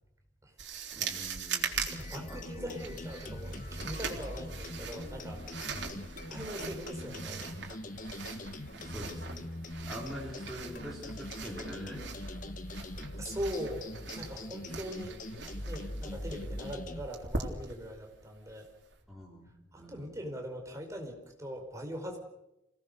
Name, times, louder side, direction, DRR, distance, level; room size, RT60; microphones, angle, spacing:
sound 1, 0.6-19.0, right 5 dB, 60° right, 3.6 m, -42 dB
voice 1, 0.9-1.8 2.3-3.0 5.7-6.0 8.8-9.5 9.9-12.2 15.8-16.0 19.1-20.2, equal, ahead, -5 dB, 4.1 m, -45 dB
sound 2, 1.7-17.1, left 1 dB, 45° left, 1.4 m, -42 dB
voice 2, 1.9-5.4 6.3-7.5 13.2-15.2 15.7-18.7 19.7-22.2, equal, 15° right, 2 dB, 4.9 m, -41 dB
28.0 x 18.5 x 6.7 m, 0.86 s
head